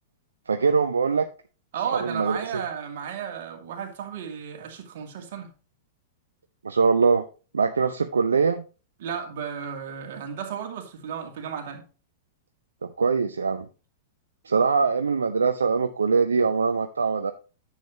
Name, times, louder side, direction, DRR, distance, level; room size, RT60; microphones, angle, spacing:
voice 1, 0.5-1.3 1.9-2.6 6.6-7.3 7.5-8.6 12.8-13.7 14.4-17.3, right 5 dB, 75° right, 0.5 m, -22 dB
voice 2, 1.7-5.5 9.0-11.8, right 7 dB, 55° right, 2.1 m, -34 dB
10.0 x 7.4 x 2.9 m
figure-of-eight pair, 100°, 0 cm